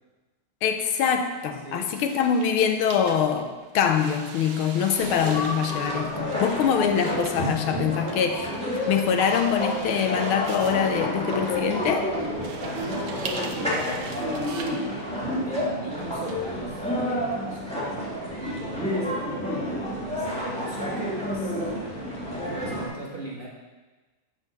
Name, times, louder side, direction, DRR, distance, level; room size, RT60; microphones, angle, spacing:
voice 1, 0.6-8.5 8.9-12.1, left 7 dB, 80° left, 6 dB, 1.6 m, -24 dB
voice 2, 1.5-2.0 12.4-14.5 15.4-22.1 22.4-23.5, right 2 dB, 30° right, -5 dB, 1.1 m, -40 dB
sound 1, 1.8-16.3, right 5 dB, 65° right, 1.3 m, -42 dB
sound 2, 5.0-22.9, equal, 5° left, 2.2 m, -29 dB
8.1 x 5.9 x 6.6 m, 1.2 s
omnidirectional pair, 2.4 m